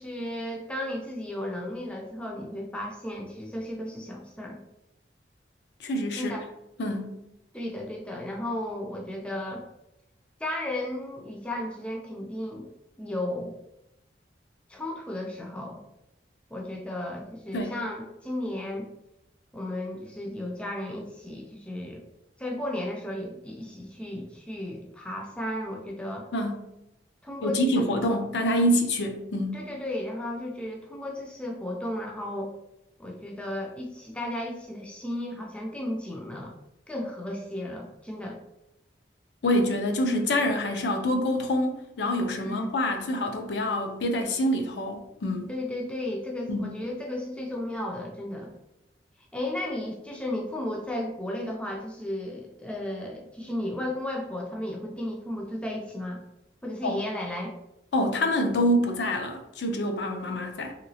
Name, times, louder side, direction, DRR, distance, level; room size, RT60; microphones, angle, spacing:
voice 1, 0.0-4.6 6.2-6.5 7.5-9.6 10.4-12.7 13.0-13.5 14.7-15.8 16.5-18.9 19.5-22.0 22.4-26.3 27.2-27.9 29.5-32.5 33.0-36.5 36.9-38.4 42.4-42.7 45.5-48.5 49.3-56.2 56.6-57.5, left 1 dB, 5° left, 0 dB, 0.3 m, -34 dB
voice 2, 5.8-6.4 6.8-7.1 17.5-17.8 26.3-26.6 27.4-29.6 39.4-45.5 46.5-46.7 56.8-57.0 57.9-60.7, left 1 dB, 75° left, 4 dB, 0.5 m, -26 dB
3.1 x 2.9 x 2.7 m, 0.88 s
head